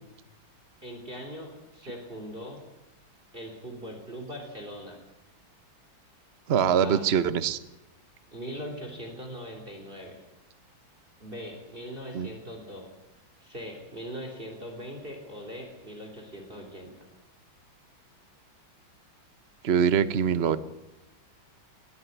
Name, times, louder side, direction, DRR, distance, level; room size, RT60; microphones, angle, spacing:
voice 1, 0.8-2.6 3.3-5.0 6.8-7.0 8.3-10.2 11.2-12.9 13.4-16.9, equal, 25° right, 3 dB, 3.5 m, -40 dB
voice 2, 6.5-7.6 12.1-12.3 19.6-20.6, right 8 dB, 45° right, 14 dB, 0.9 m, -23 dB
21.0 x 15.5 x 9.3 m, 0.92 s
omnidirectional pair, 2.2 m